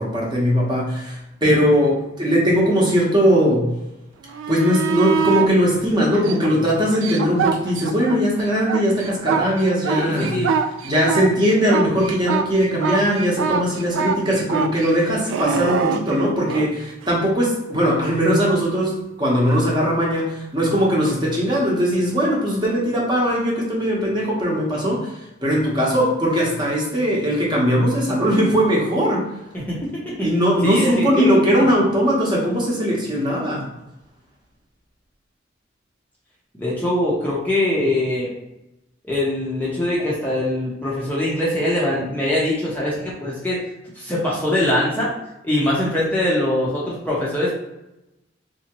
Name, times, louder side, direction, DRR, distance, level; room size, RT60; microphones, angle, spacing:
voice 1, 0.0-3.7 4.5-10.4 10.8-25.1 25.4-29.3 30.2-33.7, equal, 25° right, -4 dB, 0.9 m, -19 dB
sound 1, 4.3-5.5 6.1-8.2 8.5-16.7 19.5-19.6, right 6 dB, 90° right, 0.3 m, -24 dB
voice 2, 10.0-10.5 29.5-30.3 30.6-31.7 36.6-38.3 39.0-43.6 44.0-45.1 45.4-47.5, left 1 dB, 10° left, -7 dB, 0.7 m, -22 dB
3.4 x 2.8 x 2.9 m, 0.93 s
head